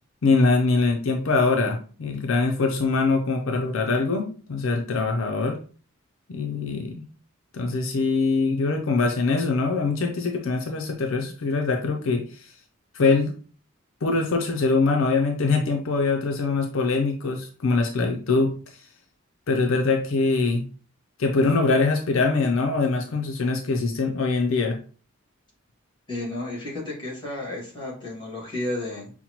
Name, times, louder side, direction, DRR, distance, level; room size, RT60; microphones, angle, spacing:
voice 1, 0.2-5.6 6.3-7.0 7.5-12.5 12.9-13.3 14.0-18.9 19.5-20.6 21.2-24.8, left 3 dB, 70° left, 3 dB, 0.5 m, -23 dB
voice 2, 26.1-29.1, left 1 dB, 25° left, -3 dB, 1.7 m, -32 dB
5.5 x 2.1 x 2.9 m, 0.39 s
head